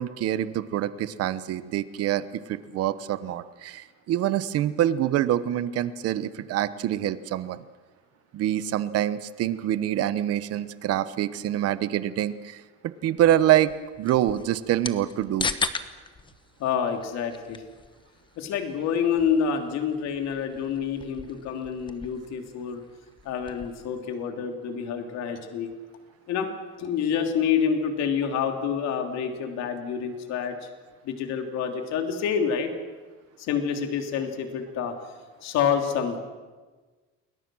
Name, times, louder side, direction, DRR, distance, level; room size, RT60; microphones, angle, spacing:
voice 1, 0.0-7.6 8.3-15.5, right 12 dB, 55° right, 14 dB, 1.1 m, -26 dB
sound 1, 13.2-23.9, left 4 dB, 15° left, 1.0 m, -38 dB
voice 2, 16.6-17.6 18.4-22.8 23.2-25.7 26.3-26.5 26.8-30.6 31.0-32.7 33.4-34.9 35.4-36.2, left 7 dB, 65° left, 4 dB, 3.2 m, -27 dB
28.5 x 21.5 x 6.3 m, 1.3 s
cardioid pair, 155°, 29 cm